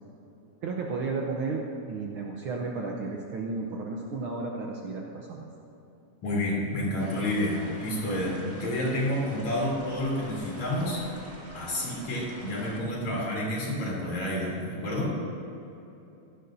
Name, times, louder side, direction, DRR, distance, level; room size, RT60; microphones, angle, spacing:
voice 1, 0.6-5.5, right 3 dB, 75° right, 0 dB, 1.2 m, -33 dB
voice 2, 6.2-11.0 11.5-15.1, left 1 dB, 70° left, -5 dB, 4.4 m, -29 dB
sound 1, 7.0-12.8, right 1 dB, 10° right, 0.7 m, -46 dB
16.5 x 11.5 x 2.7 m, 2.9 s
omnidirectional pair, 3.4 m